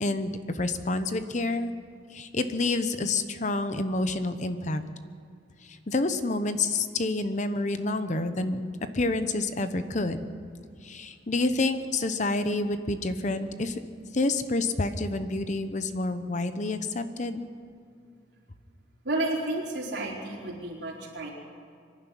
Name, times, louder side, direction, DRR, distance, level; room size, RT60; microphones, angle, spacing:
voice 1, 0.0-1.7 2.1-4.8 5.6-10.2 10.8-13.8 14.1-17.5, left 2 dB, 40° left, 10 dB, 0.9 m, -28 dB
voice 2, 19.0-21.3, right 2 dB, 65° right, -3 dB, 4.5 m, -31 dB
24.5 x 11.0 x 9.9 m, 2.2 s
head